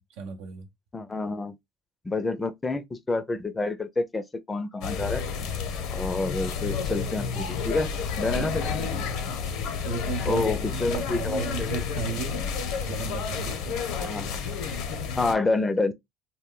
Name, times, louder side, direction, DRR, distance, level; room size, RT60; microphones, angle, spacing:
voice 1, 0.2-0.7 8.3-9.1 9.8-12.5 12.8-13.8, right 5 dB, 75° right, 0.6 m, -35 dB
voice 2, 0.9-1.5 2.0-5.2 5.9-7.9 8.2-8.6 10.3-11.7 13.9-14.3 15.2-15.9, left 3 dB, 20° left, 0.4 m, -28 dB
sound 1, 4.8-15.3, left 6 dB, 75° left, 0.6 m, -31 dB
2.2 x 2.1 x 3.6 m
supercardioid pair, 85°, 0 cm